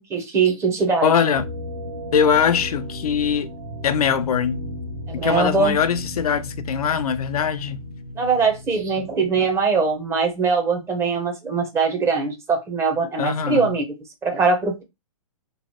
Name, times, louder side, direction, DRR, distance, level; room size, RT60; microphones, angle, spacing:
voice 1, 0.0-1.1 5.1-5.8 8.2-13.9 14.2-14.8, right 4 dB, 15° right, 0.7 m, -21 dB
voice 2, 1.0-1.5 2.1-3.5 3.8-4.6 5.1-7.8 13.2-13.7, left 7 dB, 85° left, 0.5 m, -21 dB
sound 1, 1.3-10.0, left 1 dB, 60° right, 1.3 m, -35 dB
3.0 x 2.0 x 2.9 m
hypercardioid pair, 135°, 19 cm